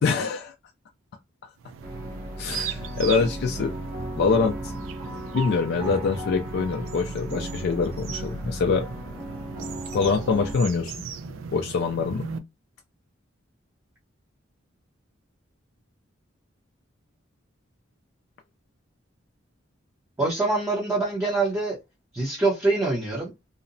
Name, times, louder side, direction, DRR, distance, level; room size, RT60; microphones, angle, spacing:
voice 1, 0.0-0.5 2.4-3.7 4.2-4.6 5.3-8.8 9.9-10.9 11.5-12.3, left 4 dB, 55° left, 0.3 m, -24 dB
sound 1, 1.6-12.4, right 6 dB, 85° right, 0.4 m, -38 dB
sound 2, 1.8-10.5, right 1 dB, 50° right, 0.8 m, -36 dB
voice 2, 20.2-21.8 22.1-23.5, right 3 dB, 15° right, 0.7 m, -25 dB
2.7 x 2.1 x 2.5 m
head